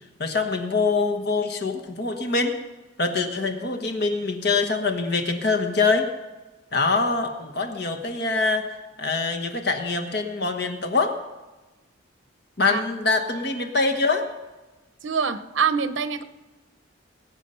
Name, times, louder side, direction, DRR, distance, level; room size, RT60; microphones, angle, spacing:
voice 1, 0.2-2.5 3.0-6.1 6.7-8.7 9.0-11.2 12.6-14.2, left 3 dB, 55° left, 4 dB, 1.3 m, -24 dB
voice 2, 15.0-16.2, right 6 dB, 70° right, 11 dB, 0.8 m, -25 dB
20.0 x 8.4 x 5.6 m, 1.2 s
head